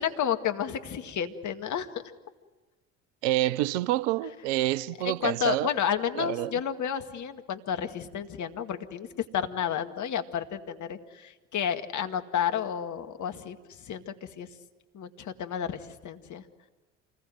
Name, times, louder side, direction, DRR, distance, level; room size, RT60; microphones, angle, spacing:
voice 1, 0.0-1.9 5.0-9.1 9.3-14.5 14.9-16.4, left 8 dB, 50° left, 2.1 m, -31 dB
voice 2, 3.2-5.7 6.2-6.5, right 15 dB, 70° right, 0.8 m, -27 dB
27.5 x 20.0 x 7.9 m
hypercardioid pair, 60°, 38 cm